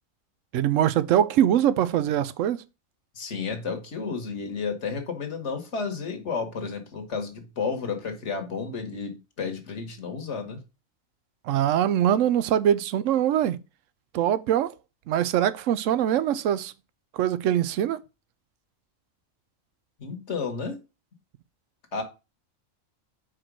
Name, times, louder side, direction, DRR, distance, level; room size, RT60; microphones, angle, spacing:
voice 1, 0.5-2.6 11.5-13.6 14.1-14.7 15.1-16.7 17.1-18.0, right 10 dB, 70° right, 0.9 m, -23 dB
voice 2, 3.1-10.6 20.0-20.8 21.9-22.0, left 5 dB, 60° left, 1.5 m, -32 dB
5.0 x 4.5 x 6.0 m
omnidirectional pair, 1.4 m